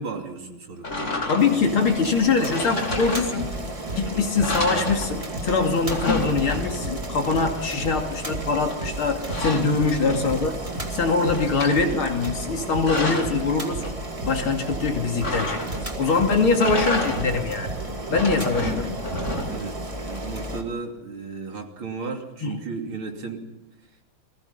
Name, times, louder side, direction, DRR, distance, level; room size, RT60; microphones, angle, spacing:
voice 1, 0.0-1.3 9.4-9.8 19.5-23.5, right 4 dB, 70° right, 2 dB, 3.7 m, -35 dB
sound 1, 0.8-1.7 2.4-3.7 4.0-4.1 4.4-5.5 5.7-7.0 8.7-10.5 10.9-11.8 12.5-13.4 15.2-16.0 16.5-17.5 18.0-19.8, left 2 dB, 35° left, 3.3 m, -30 dB
voice 2, 1.3-3.5 3.9-10.6 10.9-14.0 14.2-17.7 18.1-19.0 22.4-22.6, left 4 dB, 70° left, 3 dB, 3.3 m, -23 dB
Boiling, 1.4-20.6, right 2 dB, 15° right, 2.3 m, -34 dB
sound 2, 2.9-6.1 6.3-19.4, right 2 dB, 45° right, 5.9 m, -34 dB
29.0 x 21.0 x 5.6 m, 0.96 s
omnidirectional pair, 2.4 m